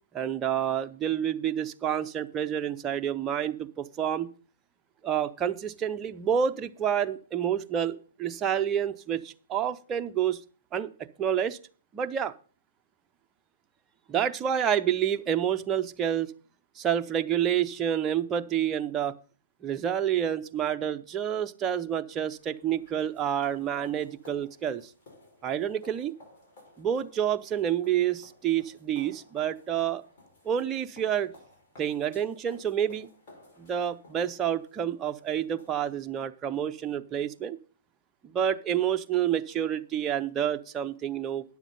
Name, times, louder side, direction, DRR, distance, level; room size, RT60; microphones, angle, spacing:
voice 1, 0.1-4.3 5.0-10.4 10.7-10.9 11.2-11.6 11.9-12.3 14.1-16.3 16.8-19.1 19.6-24.8 25.4-26.1 26.8-30.0 30.4-31.3 31.8-33.1 33.6-37.6 38.2-41.4, right 9 dB, 20° right, 7 dB, 0.6 m, -28 dB
sound 1, 22.4-36.1, left 2 dB, 40° left, 5.8 m, -56 dB
10.0 x 7.2 x 5.4 m, 0.40 s
hypercardioid pair, 150°, 0 cm